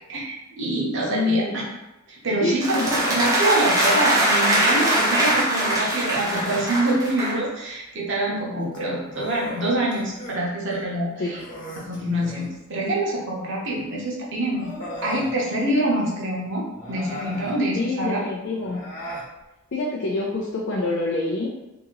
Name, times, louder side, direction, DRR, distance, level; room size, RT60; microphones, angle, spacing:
voice 1, 0.1-1.6 2.1-11.4 11.9-14.7 15.0-18.2, right 1 dB, 60° right, -4 dB, 1.0 m, -25 dB
voice 2, 1.1-1.6 2.4-3.1 11.2-11.4 17.7-18.9 19.7-21.5, left 3 dB, 55° left, -3 dB, 0.4 m, -26 dB
sound 1, 2.6-7.4, right 1 dB, 15° right, 0.6 m, -22 dB
Human voice, 2.8-3.3 4.5-5.4 6.1-6.7 8.6-10.4 10.7-10.8 11.3-12.6 13.8-13.9 14.5-15.3 16.7-17.6 18.6-19.3, equal, 40° left, 1.2 m, -36 dB
2.9 x 2.8 x 3.8 m, 0.98 s
head